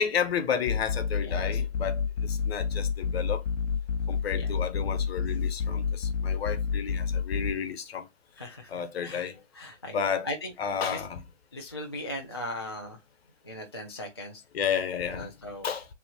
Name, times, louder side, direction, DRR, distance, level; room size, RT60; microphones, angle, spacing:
voice 1, 0.0-3.4 4.1-8.0 8.7-9.3 9.9-10.3 10.6-11.2 14.5-15.3 15.6-15.9, left 7 dB, 50° left, 1.1 m, -31 dB
sound 1, 0.7-7.5, left 6 dB, 70° left, 0.7 m, -29 dB
voice 2, 8.4-8.7 9.0-9.2 9.5-10.0 10.2-10.5 10.9-11.0 11.5-13.0 13.5-14.4 15.2-15.7, left 1 dB, 20° left, 0.3 m, -38 dB
7.0 x 3.0 x 2.3 m
hypercardioid pair, 140°, 38 cm